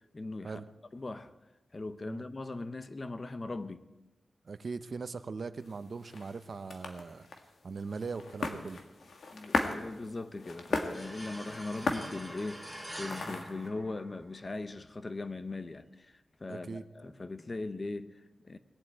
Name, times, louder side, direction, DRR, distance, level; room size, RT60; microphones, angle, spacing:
voice 1, 0.1-0.6 0.9-1.3 1.7-3.9 9.3-18.6, left 2 dB, 30° left, 0.7 m, -40 dB
voice 2, 4.4-7.3 7.6-8.8 13.2-13.4 16.5-16.8, right 4 dB, 50° right, 0.7 m, -40 dB
sound 1, 5.6-13.7, left 3 dB, 80° left, 1.8 m, -38 dB
sound 2, 10.9-14.5, equal, 5° left, 2.6 m, -45 dB
19.0 x 7.9 x 8.8 m
wide cardioid pair, 170°, 0 cm